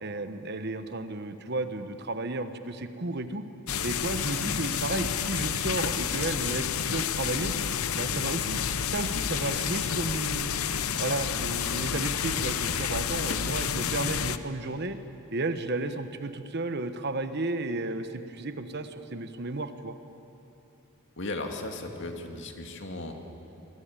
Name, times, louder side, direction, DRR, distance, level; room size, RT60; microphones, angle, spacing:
voice 1, 0.0-3.5 3.8-7.5 7.9-10.5 11.0-15.0 15.3-20.0, right 2 dB, 50° right, 10 dB, 1.2 m, -33 dB
sound 1, 3.7-14.4, left 7 dB, 85° left, 0.8 m, -30 dB
voice 2, 21.2-23.1, left 2 dB, 55° left, 4 dB, 2.3 m, -36 dB
24.5 x 21.5 x 9.0 m, 2.9 s
head